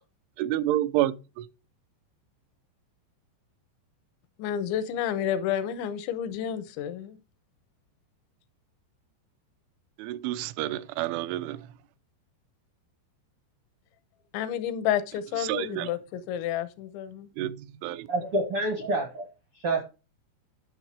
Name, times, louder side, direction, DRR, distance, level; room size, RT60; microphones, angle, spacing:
voice 1, 0.4-1.5 10.0-11.6 15.4-15.9 17.4-18.1, right 14 dB, 85° right, 3.2 m, -29 dB
voice 2, 4.4-7.2 14.3-17.3, left 10 dB, 85° left, 3.1 m, -30 dB
voice 3, 18.1-19.3 19.6-19.8, right 2 dB, 70° right, 1.3 m, -27 dB
11.0 x 6.5 x 4.7 m
omnidirectional pair, 5.3 m